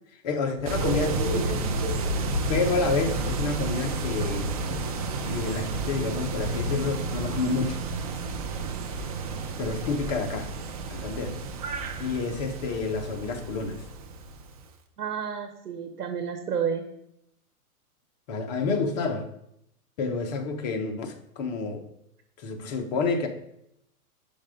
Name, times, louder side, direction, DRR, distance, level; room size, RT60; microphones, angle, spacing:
voice 1, 0.2-1.7 2.5-4.5 5.2-7.8 9.6-10.5 10.9-11.4 12.0-13.8 18.3-19.3 20.0-21.8 22.4-23.3, left 4 dB, 30° left, 4 dB, 0.8 m, -29 dB
sound 1, 0.6-7.3, left 4 dB, 50° left, 1.6 m, -34 dB
sound 2, 0.6-14.7, right 4 dB, 25° right, 0.5 m, -32 dB
voice 2, 15.0-16.8, right 7 dB, 85° right, 6 dB, 1.2 m, -30 dB
5.8 x 5.3 x 5.2 m, 0.78 s
hypercardioid pair, 145°, 46 cm